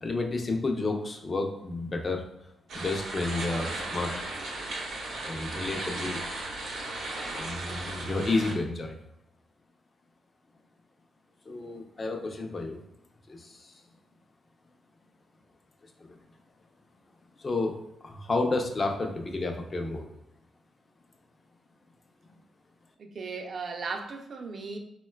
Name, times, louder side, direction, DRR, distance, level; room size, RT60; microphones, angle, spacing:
voice 1, 0.0-2.2 2.7-4.1 5.2-6.2 7.3-9.0 11.5-12.8 13.3-13.8 16.0-16.2 17.4-20.1, left 3 dB, 35° left, 3 dB, 0.4 m, -31 dB
sound 1, 2.7-8.5, right 2 dB, 90° right, 0.6 m, -36 dB
voice 2, 23.0-24.8, right 4 dB, 50° right, 4 dB, 0.4 m, -36 dB
3.6 x 2.2 x 2.2 m, 0.82 s
cardioid pair, 95°, 0 cm